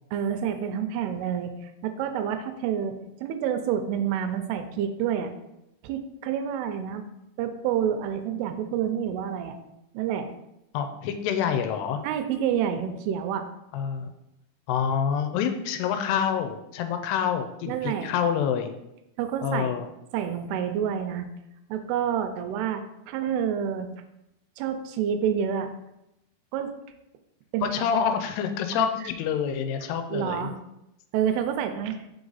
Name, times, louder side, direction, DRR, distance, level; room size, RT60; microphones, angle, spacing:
voice 1, 0.1-5.3 5.8-7.0 7.4-9.6 9.9-10.3 12.0-13.4 17.7-18.1 19.2-19.7 20.1-21.3 21.7-23.9 24.6-25.7 26.5-26.7 27.5-27.9 28.7-29.1 30.1-30.5 31.1-32.1, right 8 dB, 85° right, 8 dB, 2.5 m, -28 dB
voice 2, 10.7-12.0 13.7-14.1 14.7-18.8 19.4-19.9 27.6-30.5, left 7 dB, 85° left, 7 dB, 2.5 m, -27 dB
5.2 x 4.8 x 4.0 m, 0.87 s
omnidirectional pair, 4.7 m